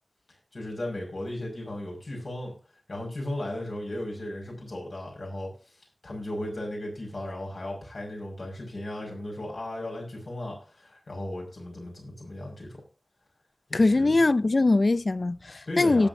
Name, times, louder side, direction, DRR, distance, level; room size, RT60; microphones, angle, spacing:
voice 1, 0.5-2.6 2.9-5.5 6.0-12.8 13.7-14.2 15.7-16.1, left 1 dB, 85° left, 5.5 m, -36 dB
voice 2, 13.7-16.1, left 2 dB, 65° left, 0.4 m, -22 dB
18.0 x 7.8 x 2.7 m
wide cardioid pair, 45°, 0 cm